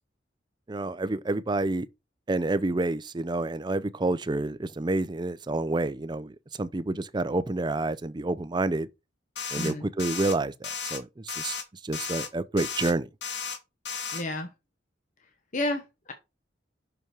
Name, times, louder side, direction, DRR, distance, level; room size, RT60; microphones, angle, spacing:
voice 1, 0.7-1.9 2.3-8.9 9.5-11.6 11.8-13.1, right 2 dB, 25° right, 0.5 m, -29 dB
sound 1, 9.4-9.7 10.0-10.3 10.6-11.0 11.3-11.6 11.9-12.3 12.6-12.9 13.2-13.6 13.9-14.2, left 6 dB, 75° left, 1.5 m, -34 dB
voice 2, 14.1-14.5 15.5-16.1, left 1 dB, 45° left, 1.1 m, -31 dB
6.2 x 5.5 x 4.6 m
head